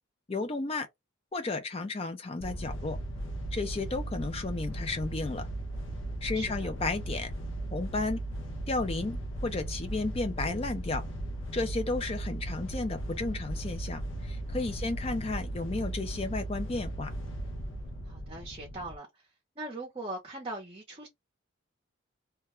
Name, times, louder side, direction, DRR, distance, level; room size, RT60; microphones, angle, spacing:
voice 1, 0.3-0.9 1.3-3.0 3.5-5.5 6.2-7.3 7.7-8.2 8.7-11.0 11.5-17.1, left 3 dB, 30° left, 0.5 m, -33 dB
sound 1, 2.4-19.0, right 1 dB, 80° left, 0.6 m, -37 dB
voice 2, 6.3-6.7 14.8-14.9 18.1-19.1 19.6-21.1, right 2 dB, 30° right, 0.6 m, -40 dB
2.3 x 2.1 x 3.0 m
head